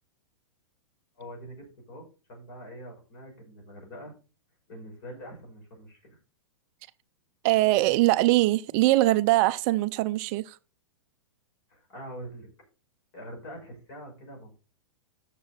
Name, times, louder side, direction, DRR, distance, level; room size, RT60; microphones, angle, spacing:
voice 1, 1.2-4.1 4.7-6.2 11.7-12.5 13.1-14.6, equal, 50° left, 6.1 m, -44 dB
voice 2, 7.4-10.6, right 18 dB, 35° right, 0.5 m, -22 dB
11.5 x 6.9 x 4.2 m
figure-of-eight pair, 105°, 15 cm